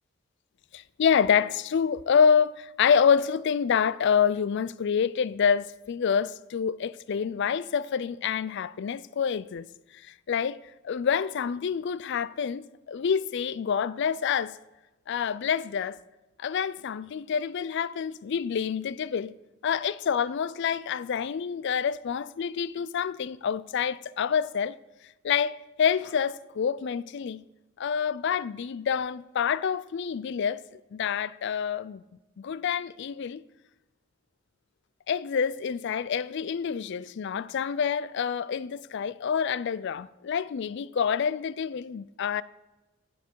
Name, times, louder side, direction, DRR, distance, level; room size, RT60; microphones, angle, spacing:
voice 1, 0.7-9.7 10.3-10.6 10.8-14.6 15.1-16.0 16.4-19.3 19.6-24.7 25.2-27.4 27.8-30.6 30.9-32.0 32.4-33.4 35.1-42.4, left 7 dB, 55° left, 0.4 m, -27 dB
11.0 x 9.1 x 4.6 m
head